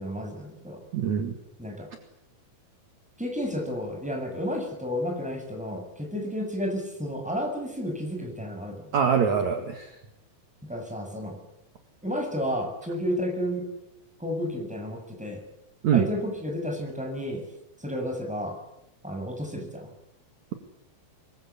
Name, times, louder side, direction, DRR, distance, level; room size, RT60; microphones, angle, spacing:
voice 1, 0.0-0.8 1.6-1.9 3.2-8.9 10.7-11.4 12.0-13.7 14.2-15.4 15.9-17.4 17.8-18.6 19.0-19.9, equal, ahead, 2 dB, 7.0 m, -31 dB
voice 2, 0.9-1.3 8.9-9.9 15.8-16.0, right 7 dB, 50° right, 5 dB, 3.0 m, -23 dB
25.0 x 23.0 x 8.7 m, 0.82 s
omnidirectional pair, 4.4 m